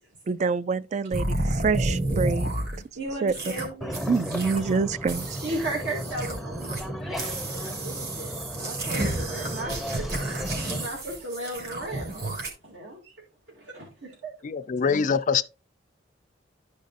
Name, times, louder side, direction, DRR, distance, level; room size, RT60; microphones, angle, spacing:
voice 1, 0.3-2.5 3.2-3.3 4.1-5.4, right 5 dB, 40° right, 0.3 m, -26 dB
sound 1, 1.1-2.8 3.3-3.7 3.9-4.7 5.1-6.8 7.1-12.5, right 2 dB, 60° right, 2.8 m, -31 dB
voice 2, 3.0-4.0 5.4-6.7 7.1-9.8 10.1-12.2 12.6-13.1 13.6-14.3, right 1 dB, 80° right, 2.3 m, -36 dB
sound 2, 3.8-10.9, equal, ahead, 0.6 m, -35 dB
voice 3, 14.4-15.4, left 6 dB, 45° left, 0.4 m, -24 dB
12.0 x 5.2 x 2.5 m
head